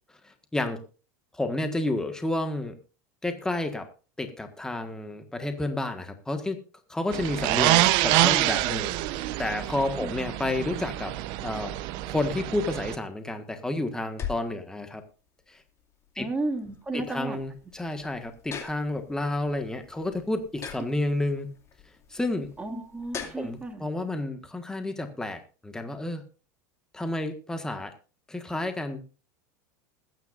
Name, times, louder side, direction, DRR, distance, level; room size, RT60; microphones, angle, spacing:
voice 1, 0.2-0.8 1.3-2.8 3.2-3.9 4.2-6.6 6.9-11.1 11.4-11.7 12.1-15.0 15.5-15.6 16.1-16.3 16.9-21.5 22.1-22.5 23.3-26.2 26.9-27.9 28.3-29.0, left 2 dB, 5° left, 6 dB, 1.6 m, -30 dB
sound 1, 7.1-13.0, right 16 dB, 60° right, 0.8 m, -26 dB
sound 2, 13.0-23.7, left 7 dB, 35° left, 2.4 m, -43 dB
voice 2, 16.2-17.4 22.6-23.9, right 2 dB, 15° right, 3 dB, 2.2 m, -33 dB
21.0 x 9.3 x 2.6 m, 0.35 s
supercardioid pair, 115°, 9 cm